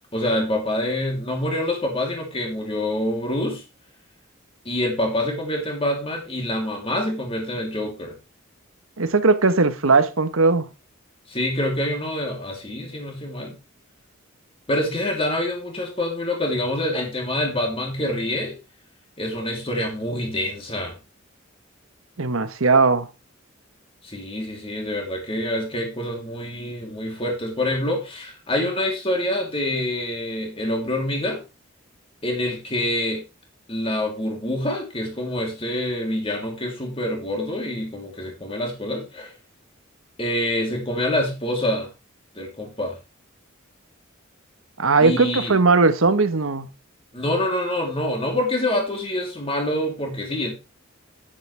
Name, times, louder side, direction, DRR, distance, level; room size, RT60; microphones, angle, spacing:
voice 1, 0.0-3.6 4.6-8.2 11.3-13.6 14.7-18.6 19.2-20.9 24.0-31.4 32.2-33.2 33.7-39.3 40.2-41.9 42.3-43.0 45.0-45.6 47.1-50.5, left 1 dB, 25° left, 3.1 m, -26 dB
voice 2, 9.0-10.7 22.2-23.1 44.8-46.7, right 3 dB, 75° right, 1.2 m, -18 dB
10.0 x 9.9 x 3.4 m
head